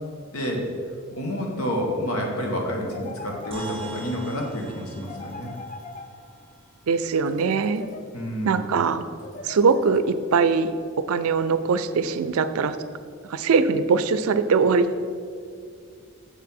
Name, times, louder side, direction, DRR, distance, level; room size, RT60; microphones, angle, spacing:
voice 1, 0.3-0.7 1.1-5.5 8.1-8.7, equal, 90° left, 0 dB, 1.4 m, -29 dB
sound 1, 2.9-4.2 5.0-6.6 7.3-8.4 9.2-10.4, left 3 dB, 35° left, 0.4 m, -41 dB
sound 2, 3.5-8.1, right 2 dB, 25° right, 0.9 m, -44 dB
voice 2, 6.9-7.8 8.4-9.0 9.4-12.8 13.2-15.0, right 5 dB, 85° right, 13 dB, 0.4 m, -22 dB
7.0 x 4.7 x 5.4 m, 2.2 s
head